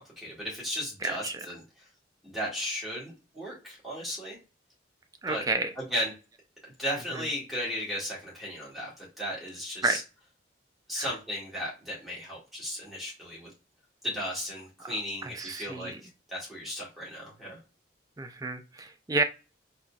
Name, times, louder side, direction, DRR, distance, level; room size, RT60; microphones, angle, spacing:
voice 1, 0.0-1.6 2.2-4.4 5.3-5.4 5.8-6.1 6.8-10.0 10.9-13.5 14.0-15.9 16.3-17.6, equal, ahead, -6 dB, 1.9 m, -35 dB
voice 2, 1.0-1.4 5.2-5.7 7.1-7.2 9.8-10.0 11.0-11.1 15.2-16.0 18.2-19.2, right 3 dB, 20° right, 7 dB, 0.4 m, -30 dB
4.1 x 2.8 x 2.3 m, 0.30 s
head